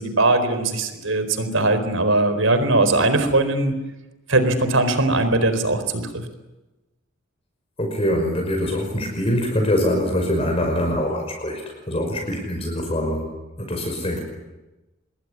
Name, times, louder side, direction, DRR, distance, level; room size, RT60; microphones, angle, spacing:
voice 1, 0.0-3.7 4.3-6.2, right 2 dB, 80° right, 10 dB, 4.3 m, -20 dB
voice 2, 7.8-11.6 11.9-13.3 13.6-14.2, left 1 dB, 30° left, 2 dB, 5.6 m, -23 dB
26.0 x 22.0 x 9.8 m, 1.0 s
head